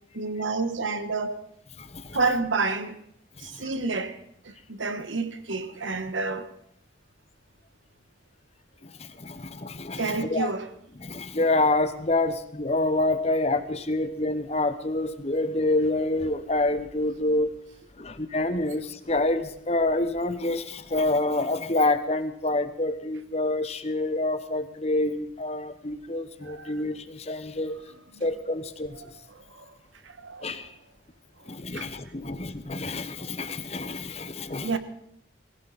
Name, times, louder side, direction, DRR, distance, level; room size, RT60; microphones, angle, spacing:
voice 1, 0.1-1.4 2.1-3.0 3.4-4.2 4.4-6.5 10.0-10.7 26.4-26.8 28.1-28.3 29.0-29.8 30.0-30.7 31.7-31.9 34.6-34.8, right 3 dB, 85° right, 1.3 m, -30 dB
voice 2, 1.8-2.2 3.4-3.7 8.8-10.5 11.0-17.5 18.0-27.8 28.2-28.9 30.4-30.7 31.5-34.7, left 2 dB, 35° left, 1.0 m, -27 dB
20.0 x 16.0 x 4.2 m
head